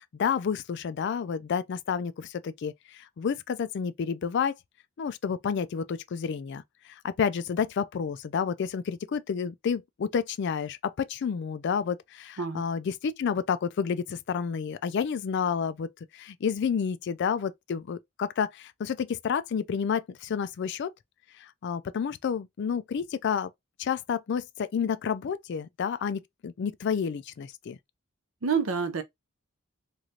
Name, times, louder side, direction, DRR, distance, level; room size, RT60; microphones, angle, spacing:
voice 1, 0.0-4.5 5.0-20.9 21.4-23.5 23.8-27.8, left 6 dB, 55° left, 0.3 m, -30 dB
voice 2, 28.4-29.0, right 6 dB, 70° right, 0.6 m, -27 dB
3.1 x 2.5 x 2.7 m
head